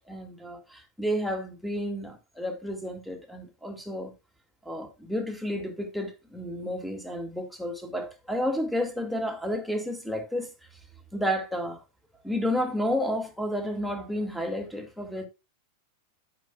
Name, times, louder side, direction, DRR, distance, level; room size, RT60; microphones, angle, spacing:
voice 1, 0.0-4.1 4.6-10.5 11.1-11.8 12.2-15.3, equal, ahead, 2.3 m, -31 dB
13.5 x 6.0 x 2.4 m
figure-of-eight pair, 90°, 0 cm